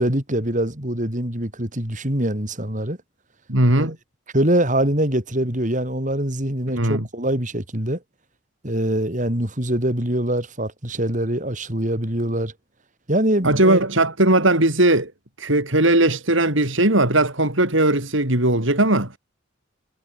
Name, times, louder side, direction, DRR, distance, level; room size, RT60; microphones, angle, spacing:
voice 1, 0.0-3.0 3.8-3.9 4.3-8.0 8.6-12.5 13.1-13.9, right 1 dB, 40° right, 4.2 m, -23 dB
voice 2, 3.5-4.0 6.7-7.1 13.4-15.1 15.4-19.2, right 1 dB, 70° right, 5.4 m, -18 dB
head